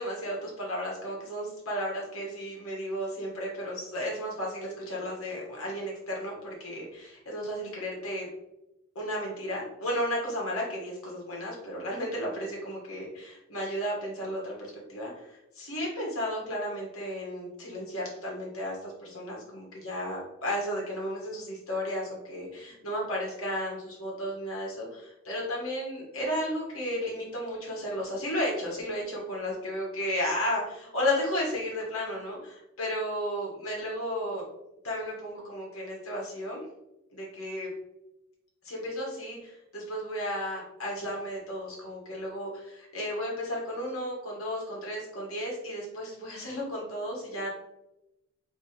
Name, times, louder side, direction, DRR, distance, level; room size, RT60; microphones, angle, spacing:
voice 1, 0.0-8.3 8.9-34.4 34.8-36.6 37.1-37.7 38.6-47.5, equal, 75° left, -3 dB, 1.5 m, -33 dB
3.4 x 3.2 x 4.2 m, 0.90 s
head